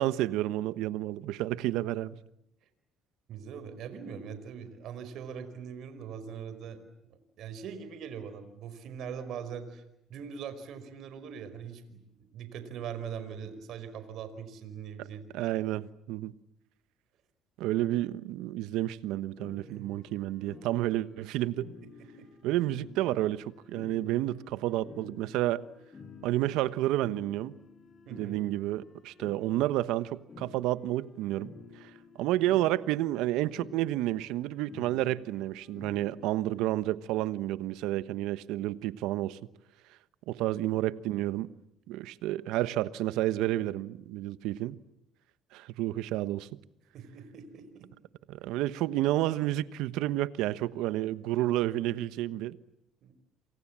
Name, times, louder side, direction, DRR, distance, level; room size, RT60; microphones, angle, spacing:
voice 1, 0.0-2.2 15.3-16.3 17.6-21.7 22.4-25.6 26.2-27.5 28.1-31.5 31.8-31.9 32.2-39.4 40.3-41.5 41.9-44.8 45.5-46.5 48.3-52.6, right 15 dB, 85° right, 1.2 m, -30 dB
voice 2, 3.3-6.8 7.4-9.8 10.1-15.2 19.7-20.0 21.8-22.3 28.1-28.4 46.9-47.9 53.0-53.1, right 7 dB, 65° right, 5.1 m, -42 dB
sound 1, 19.4-36.8, left 5 dB, 35° left, 7.0 m, -52 dB
28.5 x 26.5 x 7.5 m
cardioid pair, 100°, 0 cm